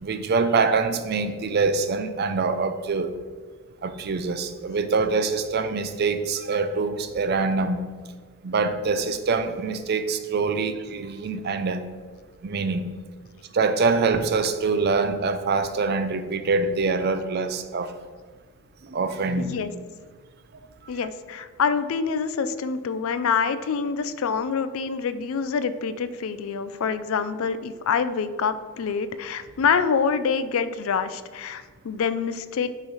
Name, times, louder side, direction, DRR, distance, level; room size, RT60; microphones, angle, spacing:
voice 1, 0.0-3.1 3.8-7.9 8.4-11.9 12.4-12.9 13.5-17.9 18.9-19.6, right 4 dB, 50° right, 9 dB, 0.4 m, -24 dB
voice 2, 19.4-19.7 20.9-32.7, left 6 dB, 75° left, 12 dB, 0.4 m, -26 dB
8.4 x 3.1 x 4.1 m, 1.5 s
head